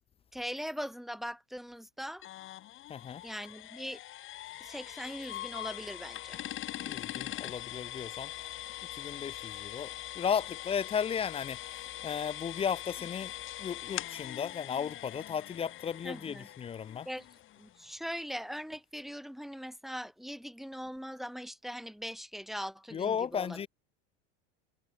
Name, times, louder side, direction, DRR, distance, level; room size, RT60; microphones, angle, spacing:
voice 1, 0.3-2.2 3.2-4.0 4.6-6.4 16.0-16.5 17.1-17.3 17.6-23.6, equal, ahead, 1.9 m, -41 dB
sound 1, 2.2-17.9, left 14 dB, 40° left, 1.8 m, -42 dB
voice 2, 2.9-3.2 6.8-8.3 8.9-11.6 12.0-13.3 13.6-17.1 22.9-23.7, left 7 dB, 20° left, 0.5 m, -35 dB
supercardioid pair, 125°, 31 cm